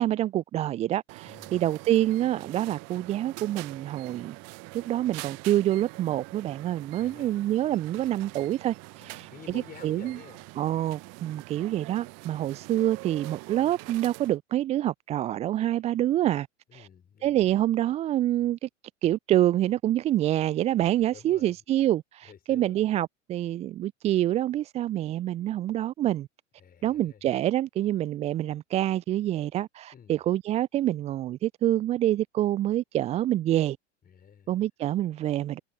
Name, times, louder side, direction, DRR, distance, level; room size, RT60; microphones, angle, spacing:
voice 1, 0.0-4.4 4.7-9.3 9.8-10.2 10.6-16.5 16.7-16.9 17.2-18.7 19.0-26.3 26.8-33.8 34.5-35.6, right 13 dB, 20° right, 0.4 m, -26 dB
sound 1, 1.1-14.4, right 28 dB, 45° right, 1.1 m, -44 dB
voice 2, 1.3-1.6 7.0-7.4 9.0-10.4 16.7-17.5 21.1-21.6 22.2-22.8 26.6-27.2 29.9-30.2 34.0-34.6, left 7 dB, 25° left, 5.7 m, -50 dB
figure-of-eight pair, 85°, 36 cm